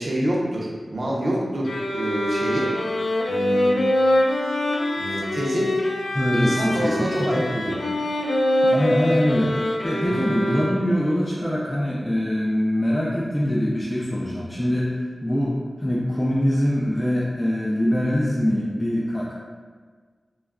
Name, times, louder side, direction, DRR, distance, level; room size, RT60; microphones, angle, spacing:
voice 1, 0.0-2.7 3.3-3.7 5.0-5.7 6.3-7.8 10.1-10.3, equal, 60° right, -4 dB, 0.6 m, -26 dB
sound 1, 1.6-11.1, left 1 dB, 85° left, 0.3 m, -24 dB
voice 2, 6.1-7.4 8.6-9.6 9.8-19.3, equal, 10° left, -6 dB, 0.4 m, -23 dB
2.3 x 2.2 x 3.4 m, 1.5 s
wide cardioid pair, 75°, 0 cm